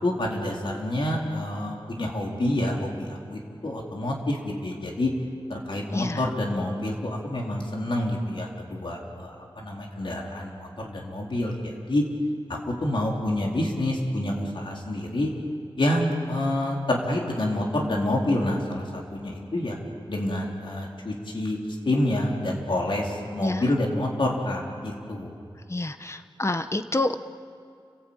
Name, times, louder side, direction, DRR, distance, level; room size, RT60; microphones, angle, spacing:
voice 1, 0.0-5.1 5.5-12.0 12.8-15.3 15.8-19.8 20.1-21.6 21.8-25.3, left 1 dB, 75° left, -1 dB, 4.1 m, -28 dB
voice 2, 25.7-27.1, left 2 dB, 30° left, 9 dB, 1.1 m, -27 dB
29.5 x 17.0 x 8.9 m, 2.3 s
wide cardioid pair, 80°, 9 cm